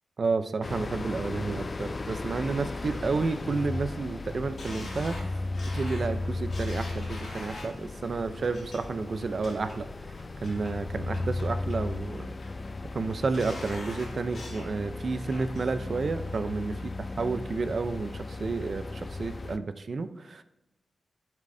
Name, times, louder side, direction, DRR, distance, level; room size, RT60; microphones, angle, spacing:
voice 1, 0.2-5.2 5.7-9.9 10.4-12.3 12.9-16.9 17.2-20.4, right 4 dB, 50° right, 10 dB, 0.6 m, -31 dB
sound 1, 0.6-19.6, left 2 dB, 35° left, 0.4 m, -36 dB
sound 2, 4.6-7.8 8.4-8.8 9.2-9.8 10.2-10.7 11.1-11.8 12.1-12.7 13.1-14.7 15.1-15.6 16.0-16.1, left 2 dB, 65° left, 2.9 m, -44 dB
11.0 x 7.5 x 2.7 m, 0.99 s
wide cardioid pair, 140°, 0 cm